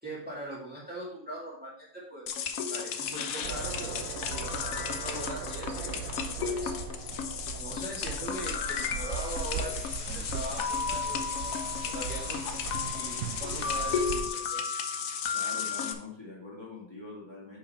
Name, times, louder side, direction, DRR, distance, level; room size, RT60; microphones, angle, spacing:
voice 1, 0.0-2.3 2.7-6.7 7.6-12.6 12.9-14.7, right 1 dB, 5° right, -6 dB, 1.9 m, -41 dB
sound 1, 2.3-15.9, left 6 dB, 70° left, 1.1 m, -33 dB
sound 2, 3.4-14.3, right 7 dB, 75° right, 1.0 m, -39 dB
sound 3, 9.1-14.1, right 3 dB, 35° right, 0.8 m, -46 dB
voice 2, 15.3-17.6, left 3 dB, 20° left, -6 dB, 2.0 m, -44 dB
5.7 x 5.6 x 4.2 m, 0.62 s
omnidirectional pair, 1.5 m